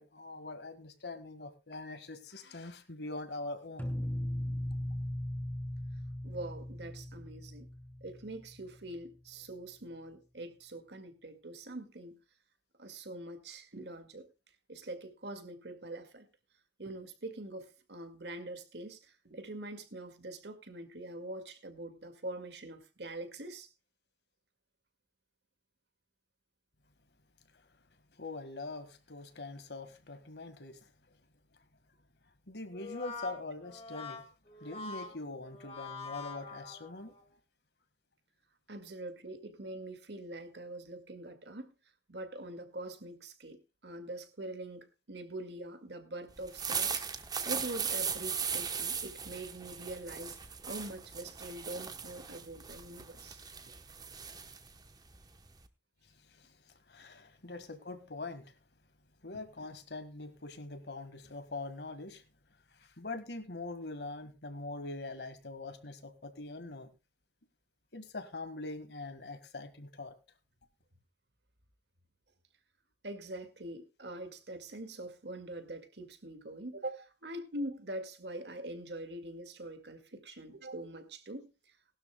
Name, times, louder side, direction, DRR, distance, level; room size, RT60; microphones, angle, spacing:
voice 1, 0.0-3.9 28.2-30.9 32.5-34.3 34.6-37.1 56.2-58.5 59.2-62.2 62.7-66.9 67.9-70.2, left 2 dB, 70° left, 1.7 m, -43 dB
sound 1, 3.8-8.7, left 1 dB, 10° left, 2.5 m, -38 dB
voice 2, 6.2-7.7 8.0-12.2 12.8-14.3 14.7-16.3 16.8-23.7 38.7-41.7 42.1-50.4 50.6-53.4 73.0-81.5, right 1 dB, 70° right, 2.0 m, -44 dB
Brass instrument, 32.7-37.2, left 4 dB, 35° left, 2.5 m, -45 dB
sound 2, 46.4-55.7, right 6 dB, 20° right, 1.0 m, -38 dB
20.0 x 12.0 x 2.2 m
head